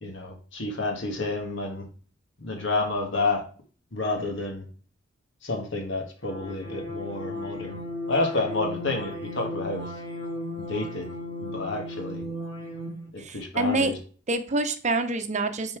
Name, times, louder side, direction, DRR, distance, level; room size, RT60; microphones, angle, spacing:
voice 1, 0.0-1.9 2.4-3.5 3.9-4.7 5.4-7.8 8.1-9.9 10.6-11.1 11.4-12.2 13.1-14.0, left 2 dB, 70° left, 2 dB, 2.0 m, -29 dB
sound 1, 6.3-13.1, left 1 dB, 25° left, 3.3 m, -35 dB
voice 2, 13.2-13.9 14.3-15.8, right 2 dB, 40° right, 8 dB, 0.8 m, -26 dB
9.7 x 4.5 x 3.3 m, 0.40 s
head